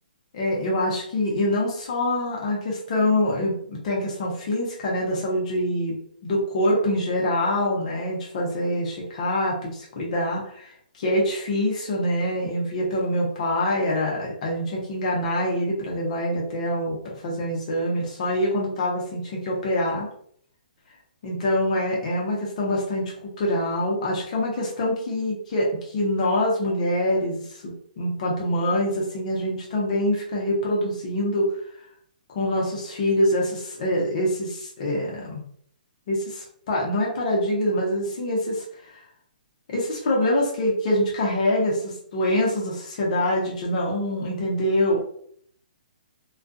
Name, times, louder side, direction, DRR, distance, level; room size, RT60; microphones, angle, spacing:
voice 1, 0.3-5.9 6.2-20.1 21.2-31.5 32.3-35.4 36.1-38.9 39.7-45.0, left 1 dB, 45° left, -3 dB, 0.8 m, -25 dB
2.3 x 2.3 x 2.6 m, 0.64 s
hypercardioid pair, 155°, 5 cm